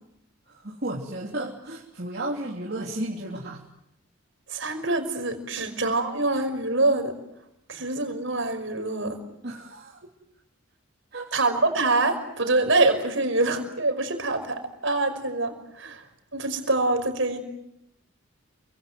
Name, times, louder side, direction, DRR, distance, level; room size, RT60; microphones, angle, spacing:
voice 1, 0.5-3.6 5.6-5.8 7.7-7.8 9.4-10.0 11.1-11.3, right 1 dB, 50° right, -3 dB, 3.2 m, -34 dB
voice 2, 4.5-7.1 7.7-9.2 11.3-16.0 16.3-17.4, right 2 dB, 65° right, 7 dB, 5.5 m, -25 dB
29.0 x 25.5 x 7.8 m, 0.81 s
head